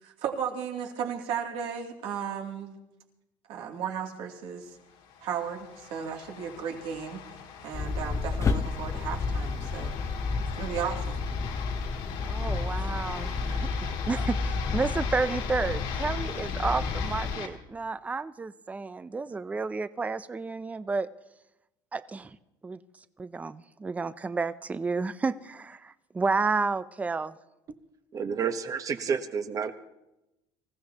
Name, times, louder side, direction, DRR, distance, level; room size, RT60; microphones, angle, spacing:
voice 1, 0.0-2.8 3.5-4.7 5.2-7.3 7.6-9.9 10.6-11.2, right 7 dB, 70° right, 0 dB, 2.7 m, -35 dB
sound 1, 4.9-17.5, left 7 dB, 85° left, 2.2 m, -40 dB
sound 2, 7.7-17.4, left 4 dB, 30° left, 0.7 m, -31 dB
voice 2, 12.2-21.1 21.9-22.4 22.6-22.8 23.2-27.4, right 4 dB, 15° right, 14 dB, 0.5 m, -31 dB
voice 3, 28.1-29.7, right 6 dB, 35° right, 9 dB, 1.1 m, -30 dB
25.5 x 15.5 x 2.9 m, 0.92 s
cardioid pair, 135°, 10 cm